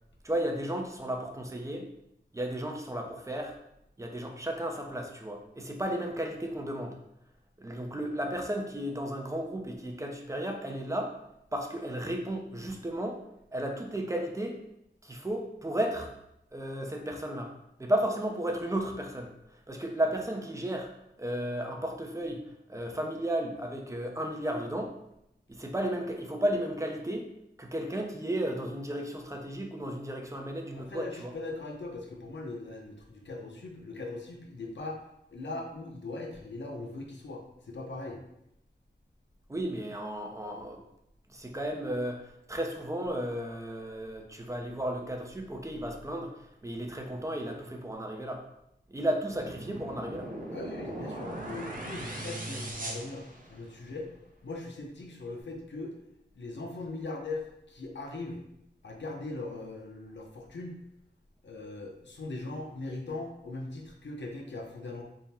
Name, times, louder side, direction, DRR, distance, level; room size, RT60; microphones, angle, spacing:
voice 1, 0.2-1.9 2.3-3.6 4.0-6.9 7.6-11.1 11.5-13.2 13.5-14.6 15.0-16.1 16.5-17.5 17.8-19.3 19.7-20.9 21.2-22.4 22.7-24.9 25.5-27.3 27.6-31.3 39.5-40.8 41.3-48.4 48.9-50.3, right 1 dB, 15° right, 2 dB, 0.6 m, -34 dB
voice 2, 30.8-35.0 35.3-38.2 50.5-54.1 54.4-55.9 56.3-58.5 58.8-60.8 61.4-65.0, left 2 dB, 85° left, 1 dB, 0.7 m, -40 dB
sound 1, 49.3-53.9, right 1 dB, 50° right, 0.8 m, -39 dB
3.6 x 2.1 x 4.2 m, 0.80 s
wide cardioid pair, 85°, 18 cm